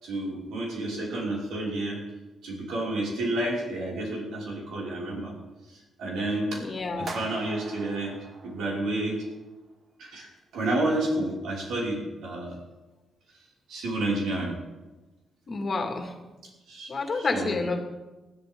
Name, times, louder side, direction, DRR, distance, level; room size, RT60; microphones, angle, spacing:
voice 1, 0.0-2.0 2.4-5.3 6.0-6.6 7.0-8.2 8.4-9.2 10.0-10.3 10.5-12.5 13.7-14.5 16.7-17.6, right 1 dB, 90° right, -4 dB, 5.7 m, -30 dB
voice 2, 6.6-7.1 15.5-16.1 16.9-17.8, left 3 dB, 35° left, 3 dB, 2.2 m, -29 dB
sound 1, 7.1-9.3, right 3 dB, 45° right, 1.6 m, -42 dB
20.5 x 13.0 x 3.8 m, 1.1 s
cardioid pair, 140°, 0 cm